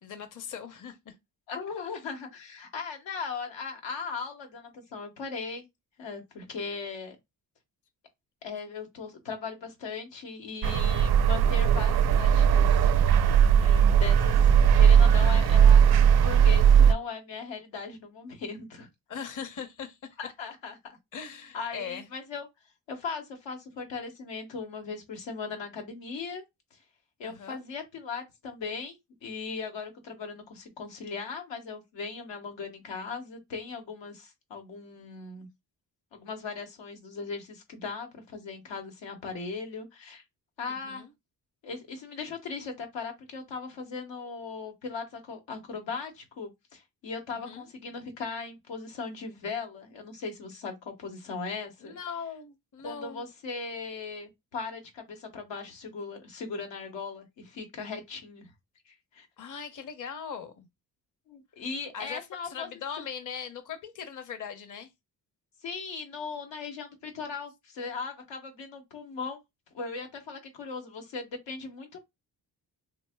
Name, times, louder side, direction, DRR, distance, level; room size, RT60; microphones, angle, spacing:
voice 1, 0.0-1.1 19.1-20.1 21.1-22.1 27.2-27.6 40.7-41.1 47.3-47.7 51.8-53.2 59.4-60.7 61.9-64.9, left 7 dB, 45° left, 0.7 m, -40 dB
voice 2, 1.5-5.6 6.0-7.2 8.4-12.8 13.6-14.4 14.8-18.9 20.2-21.0 21.5-22.5 22.9-26.4 27.2-29.0 29.2-35.5 36.1-40.2 40.6-41.0 41.6-52.0 52.8-58.5 58.9-59.3 61.3-62.7 65.6-69.4 69.7-72.0, left 5 dB, 85° left, 1.0 m, -38 dB
sound 1, 10.6-16.9, right 8 dB, 60° right, 0.5 m, -19 dB
2.8 x 2.1 x 3.4 m
cardioid pair, 55°, 43 cm